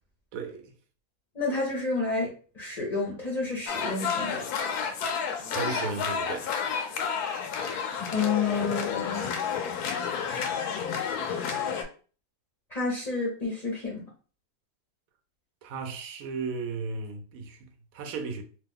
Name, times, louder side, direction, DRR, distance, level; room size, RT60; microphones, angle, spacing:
voice 1, 0.3-0.7 5.5-6.5 15.6-18.4, right 4 dB, 70° right, 1.0 m, -35 dB
voice 2, 1.3-4.4 7.6-7.8 8.1-9.2 12.7-14.0, left 4 dB, 40° left, 0.6 m, -30 dB
sound 1, 3.7-11.8, left 6 dB, 80° left, 1.1 m, -30 dB
3.0 x 2.1 x 3.5 m
omnidirectional pair, 1.6 m